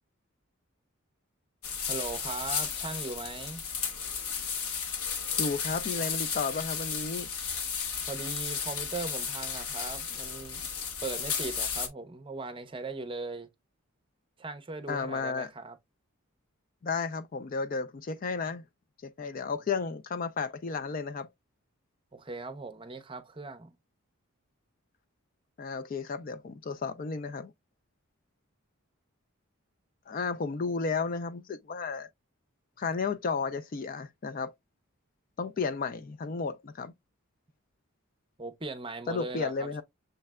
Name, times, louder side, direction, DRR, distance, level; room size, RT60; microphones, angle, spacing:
sound 1, 1.6-11.9, left 6 dB, 80° left, 1.0 m, -34 dB
voice 1, 1.9-3.6 8.0-10.7 11.0-13.5 14.4-15.8 22.1-23.7 38.4-39.8, right 3 dB, 25° right, 0.6 m, -39 dB
voice 2, 5.4-7.3 14.9-15.5 16.8-18.6 19.0-21.3 25.6-27.5 30.1-32.1 32.8-34.5 35.4-36.9 39.1-39.8, left 4 dB, 40° left, 0.3 m, -33 dB
6.6 x 3.2 x 2.2 m
head